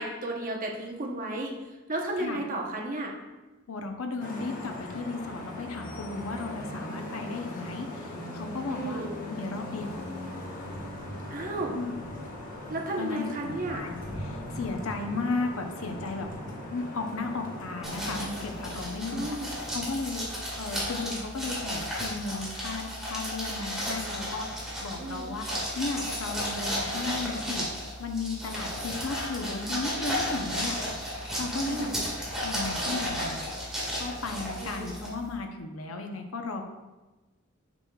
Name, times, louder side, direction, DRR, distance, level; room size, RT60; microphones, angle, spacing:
voice 1, 0.0-1.5 1.9-3.1 8.7-9.2 11.3-11.8 12.7-13.8 19.1-19.5 25.0-25.3 31.6-32.0 34.6-34.9, right 1 dB, 40° right, 0 dB, 0.9 m, -33 dB
voice 2, 3.7-10.0 11.7-11.9 13.0-16.3 16.7-19.4 19.7-20.3 20.6-30.8 31.1-31.9 32.4-36.6, left 3 dB, 80° left, 4 dB, 0.7 m, -35 dB
Vehicle horn car horn honking / Traffic noise roadway noise, 4.2-18.8, left 1 dB, 40° left, 1.2 m, -39 dB
sound 1, 17.8-35.3, equal, 5° right, 1.8 m, -34 dB
6.9 x 6.1 x 2.3 m, 1.2 s
head